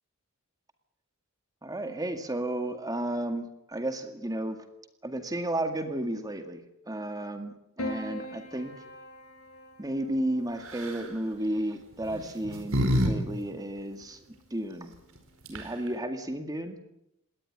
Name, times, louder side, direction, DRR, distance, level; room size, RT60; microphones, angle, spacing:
voice 1, 1.6-4.6 5.0-8.7 9.8-14.9 15.5-16.7, right 1 dB, 15° right, 7 dB, 2.0 m, -33 dB
Piano, 7.8-12.3 13.5-14.1, left 1 dB, 80° left, 5.3 m, -42 dB
sound 1, 10.6-11.1 12.0-13.1 13.4-13.5 15.2-15.3 15.4-15.9, equal, 65° right, 4.8 m, -27 dB
21.0 x 18.5 x 9.8 m, 0.82 s
head